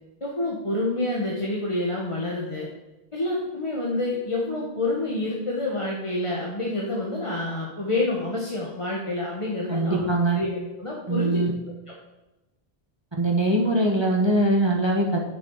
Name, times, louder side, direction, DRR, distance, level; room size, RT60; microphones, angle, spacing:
voice 1, 0.2-2.7 3.1-10.1 10.3-11.4, left 2 dB, 30° left, -3 dB, 1.5 m, -28 dB
voice 2, 9.7-10.4 11.1-11.5 13.2-15.2, right 1 dB, 25° right, -1 dB, 1.5 m, -22 dB
9.8 x 7.0 x 4.9 m, 1.0 s
omnidirectional pair, 1.1 m